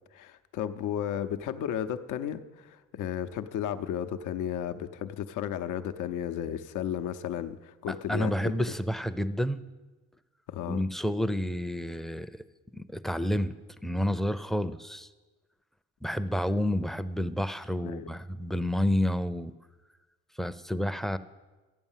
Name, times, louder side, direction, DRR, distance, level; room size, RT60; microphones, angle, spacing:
voice 1, 0.1-8.5 10.5-10.8 17.8-18.1, left 10 dB, 80° left, 9 dB, 0.7 m, -34 dB
voice 2, 8.1-9.6 10.7-12.3 12.7-13.5 13.8-15.1 16.0-19.5 20.4-21.2, left 1 dB, ahead, 11 dB, 0.5 m, -29 dB
13.0 x 8.9 x 7.3 m, 1.2 s
cardioid pair, 90°, 30 cm